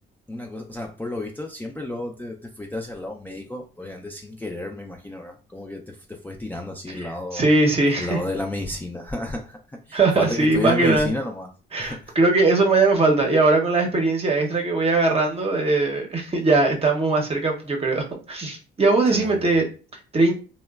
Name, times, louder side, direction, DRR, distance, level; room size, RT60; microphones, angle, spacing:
voice 1, 0.3-7.5 8.0-11.5 11.8-12.2 19.1-19.6, left 1 dB, 10° left, 0.4 m, -32 dB
voice 2, 7.3-8.2 9.9-11.1 11.7-20.3, right 3 dB, 30° right, 0.7 m, -20 dB
2.9 x 2.1 x 2.3 m
cardioid pair, 90°, 20 cm